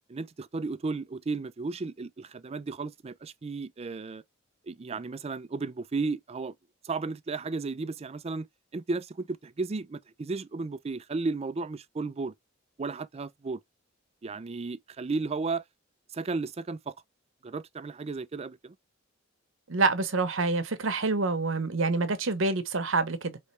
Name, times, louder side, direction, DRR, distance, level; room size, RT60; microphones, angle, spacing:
voice 1, 0.1-4.2 4.7-6.5 6.8-8.5 8.7-12.3 12.8-13.6 14.2-15.6 16.1-16.9 17.4-18.7, right 3 dB, 30° right, 0.4 m, -34 dB
voice 2, 19.7-23.4, right 3 dB, 70° right, 0.9 m, -27 dB
4.3 x 3.1 x 3.2 m
head